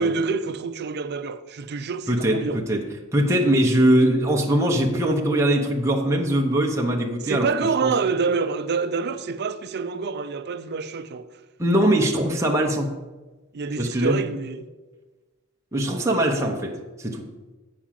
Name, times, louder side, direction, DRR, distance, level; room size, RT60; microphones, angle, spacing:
voice 1, 0.0-2.6 7.2-11.3 13.5-14.7, right 4 dB, 50° right, 0.5 m, -27 dB
voice 2, 2.1-7.5 7.8-7.9 11.6-12.9 13.8-14.2 15.7-17.3, right 1 dB, 15° right, 0.8 m, -21 dB
8.7 x 4.9 x 7.5 m
head